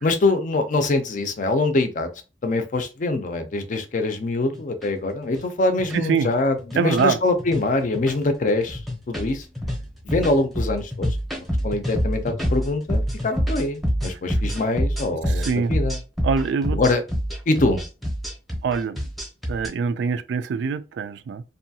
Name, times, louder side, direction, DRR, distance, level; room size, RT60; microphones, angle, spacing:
voice 1, 0.0-2.1 2.4-8.8 9.1-9.4 10.0-11.1 11.6-16.0 16.7-17.0 17.5-17.8, left 2 dB, 45° left, 0.5 m, -23 dB
sound 1, 3.6-3.7 4.4-4.9 5.2-5.4 5.8-6.0 6.6-7.1 7.4-7.6 7.9-8.3 8.7-19.7, equal, ahead, 0.7 m, -26 dB
voice 2, 5.9-6.3 6.8-7.2 15.3-15.7 16.2-16.8 18.6-19.0 19.5-21.4, right 5 dB, 85° right, 0.3 m, -24 dB
2.7 x 2.3 x 2.7 m
head